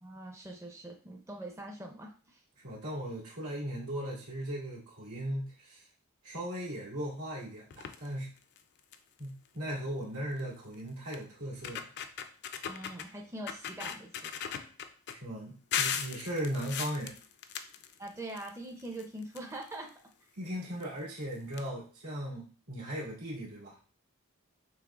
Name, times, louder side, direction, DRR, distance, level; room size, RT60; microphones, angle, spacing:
voice 1, 0.0-2.4 12.7-14.4 18.0-19.9, right 1 dB, 15° right, 1 dB, 0.5 m, -43 dB
voice 2, 2.6-5.8 6.2-8.3 9.2-11.9 15.1-17.2 20.4-23.8, equal, 85° right, -5 dB, 2.0 m, -38 dB
sound 1, 7.7-8.1 8.6-8.7 8.9-9.2 10.4-10.5 11.1-11.2 11.5-13.1 13.5-15.1 15.7-18.5 18.8-19.9 20.8-20.9 21.2-21.3 21.5-21.6, left 8 dB, 50° left, 0.4 m, -37 dB
6.0 x 3.1 x 2.4 m, 0.39 s
head